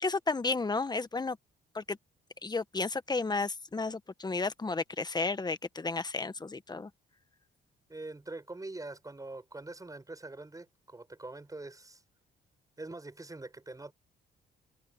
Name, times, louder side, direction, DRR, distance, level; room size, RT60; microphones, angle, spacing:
voice 1, 0.0-1.4 1.7-2.0 2.4-6.9, left 3 dB, 20° left, 1.3 m, -32 dB
voice 2, 7.9-12.0 12.8-13.9, right 2 dB, 15° right, 7.8 m, -44 dB
cardioid pair, 90°, 20 cm